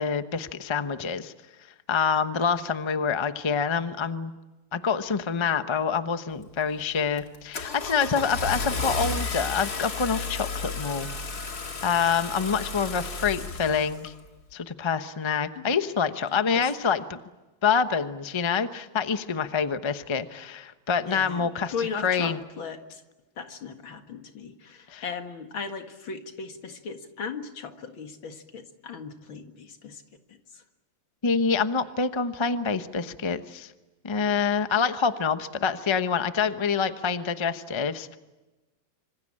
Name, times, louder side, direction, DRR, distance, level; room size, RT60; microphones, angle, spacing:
voice 1, 0.0-1.3 1.9-4.3 4.7-11.1 11.8-14.1 14.5-17.2 17.6-21.7 22.0-22.4 24.9-25.0 31.2-33.7 34.0-38.2, left 6 dB, 25° left, 9 dB, 0.7 m, -26 dB
Car / Engine starting, 6.4-6.7 7.2-14.1, left 3 dB, 50° left, 2.5 m, -33 dB
voice 2, 16.3-16.7 21.0-23.0 23.4-30.0 30.3-30.6, left 5 dB, 80° left, 6 dB, 2.7 m, -37 dB
26.0 x 25.5 x 8.7 m, 1.1 s
omnidirectional pair, 2.1 m